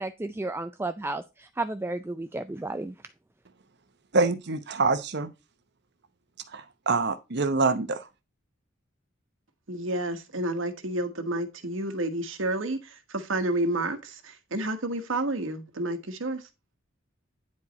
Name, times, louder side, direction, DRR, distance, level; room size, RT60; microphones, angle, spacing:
voice 1, 0.0-2.9, right 2 dB, 10° right, 0.3 m, -33 dB
voice 2, 4.1-5.3 6.5-8.1, right 3 dB, 60° right, 0.9 m, -25 dB
voice 3, 9.7-16.5, right 1 dB, 80° right, 1.3 m, -30 dB
9.6 x 4.7 x 4.2 m
head